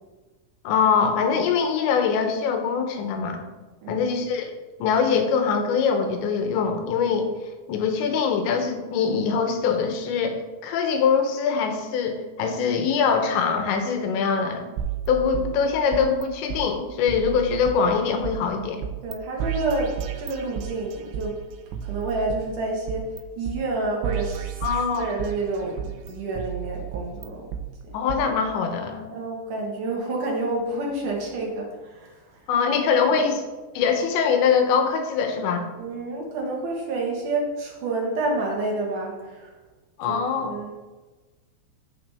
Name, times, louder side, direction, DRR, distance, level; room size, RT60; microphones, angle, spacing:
voice 1, 0.6-3.4 3.9-4.5 4.8-7.3 7.7-14.7 15.1-18.8 24.6-25.1 27.9-29.1 32.5-33.4 33.8-35.7 40.0-40.5, left 6 dB, 75° left, 5 dB, 3.1 m, -23 dB
sound 1, 14.8-16.2 16.5-16.6 17.1-18.3 18.8-19.1 19.4-21.3 21.7-23.2 23.5-23.6 24.0-25.4 25.8-27.6 28.1-28.2, right 9 dB, 80° right, 2.7 m, -32 dB
voice 2, 19.0-21.4 21.8-24.5 25.0-27.5 29.1-32.4 33.1-33.2 35.8-39.5 40.1-40.7, right 2 dB, 65° right, -2 dB, 2.1 m, -29 dB
14.0 x 4.9 x 3.4 m, 1.2 s
omnidirectional pair, 5.5 m